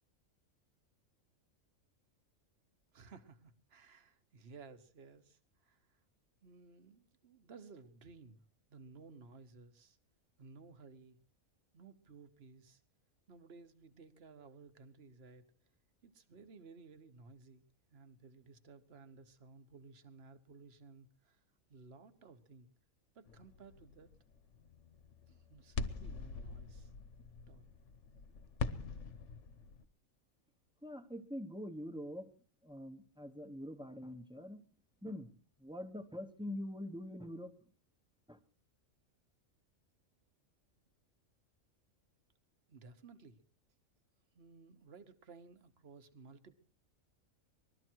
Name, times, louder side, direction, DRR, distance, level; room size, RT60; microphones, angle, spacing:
voice 1, 2.9-5.9 6.4-8.4 8.7-10.0 10.4-11.2 11.7-12.8 13.3-15.5 16.0-21.4 21.7-22.7 23.1-24.2 25.3-26.9 27.5-27.7 42.7-43.4 44.3-46.6, right 4 dB, 50° right, 10 dB, 1.4 m, -57 dB
sound 1, 23.3-29.8, left 5 dB, 65° left, 1.3 m, -44 dB
voice 2, 30.8-32.3 32.6-34.6 35.0-37.5 38.3-38.4, left 1 dB, 5° right, 6 dB, 1.0 m, -44 dB
20.5 x 13.0 x 4.6 m, 0.39 s
omnidirectional pair, 1.4 m